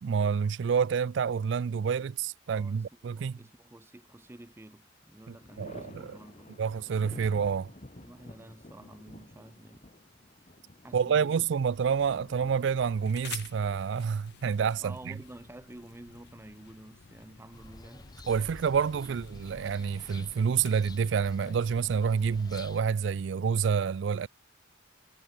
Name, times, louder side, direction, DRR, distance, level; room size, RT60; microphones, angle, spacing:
voice 1, 0.0-3.4 5.3-6.2 6.6-7.7 10.9-15.1 18.3-24.3, right 6 dB, 65° right, 0.4 m, -28 dB
voice 2, 2.5-6.6 8.0-9.8 10.8-11.4 14.8-18.1 19.0-19.4, right 1 dB, 15° right, 0.5 m, -50 dB
Thunder, 3.8-4.5 4.9-14.5 16.0-16.8, left 1 dB, 35° left, 1.5 m, -51 dB
sound 1, 11.6-22.6, left 8 dB, 60° left, 0.7 m, -51 dB
sound 2, 17.5-22.8, left 2 dB, 20° left, 0.7 m, -49 dB
head